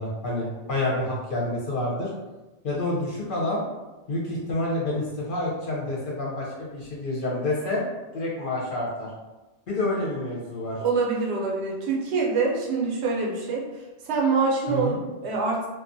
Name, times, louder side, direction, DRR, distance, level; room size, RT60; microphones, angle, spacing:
voice 1, 0.0-2.1 2.6-3.6 4.1-7.8 8.1-9.1 9.7-10.8 14.7-15.0, left 2 dB, 55° left, -4 dB, 0.7 m, -28 dB
voice 2, 10.8-15.7, right 4 dB, 75° right, -3 dB, 0.8 m, -25 dB
2.4 x 2.2 x 2.5 m, 1.1 s
omnidirectional pair, 1.2 m